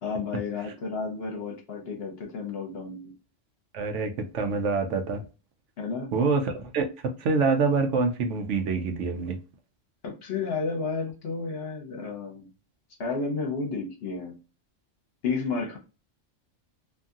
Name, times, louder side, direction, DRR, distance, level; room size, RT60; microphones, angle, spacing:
voice 1, 0.0-3.1 5.8-6.1 10.0-12.5 13.0-14.4 15.2-15.8, left 4 dB, 55° left, 1.0 m, -32 dB
voice 2, 3.7-5.2 6.1-6.9 7.2-9.4, right 4 dB, 75° right, 0.9 m, -26 dB
2.7 x 2.7 x 2.4 m
omnidirectional pair, 1.3 m